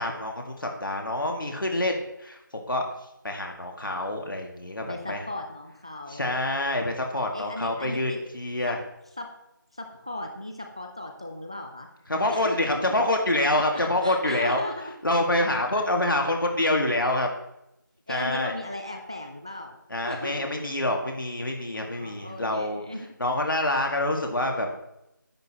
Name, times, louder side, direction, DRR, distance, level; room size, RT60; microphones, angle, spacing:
voice 1, 0.0-2.8 3.2-5.2 6.1-8.8 12.1-14.6 15.0-17.3 18.1-18.5 19.9-22.8 23.2-24.7, left 1 dB, 75° left, 2 dB, 2.0 m, -26 dB
voice 2, 4.9-6.4 7.3-8.2 8.7-8.8 9.2-9.3 9.7-11.9 12.3-13.0 13.6-14.9 18.1-19.8 20.1-20.7 21.7-23.1, left 1 dB, 15° right, 4 dB, 0.4 m, -37 dB
10.5 x 8.2 x 2.9 m, 0.84 s
figure-of-eight pair, 170°, 11 cm